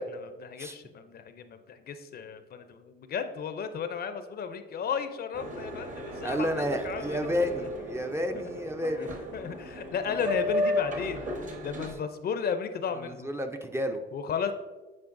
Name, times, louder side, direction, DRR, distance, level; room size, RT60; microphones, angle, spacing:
voice 1, 0.0-7.3 8.9-9.1 9.3-11.3 11.6-13.3 14.1-14.5, left 6 dB, 50° left, 9 dB, 0.5 m, -34 dB
Boat Water vehicle, 5.3-11.9, left 1 dB, 40° right, 1.1 m, -34 dB
voice 2, 6.2-9.2 11.8-11.9 13.0-14.0, equal, 15° right, 6 dB, 0.4 m, -31 dB
8.6 x 4.4 x 2.6 m, 1.2 s
cardioid pair, 90°, 20 cm